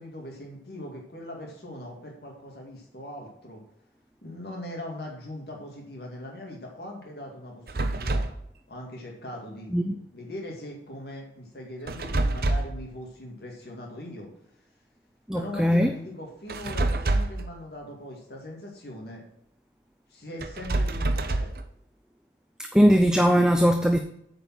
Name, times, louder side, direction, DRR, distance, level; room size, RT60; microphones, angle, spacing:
voice 1, 0.0-3.6 4.2-8.3 8.7-9.7 10.1-14.3 15.3-19.2 20.1-21.6, left 1 dB, 65° left, 0 dB, 2.3 m, -40 dB
sound 1, 7.7-8.4 11.9-12.8 16.5-17.5 20.4-21.6, right 2 dB, 55° right, 0.7 m, -26 dB
voice 2, 15.3-15.9 22.7-24.0, equal, 5° right, 5 dB, 0.4 m, -20 dB
8.9 x 5.3 x 6.0 m, 0.76 s
head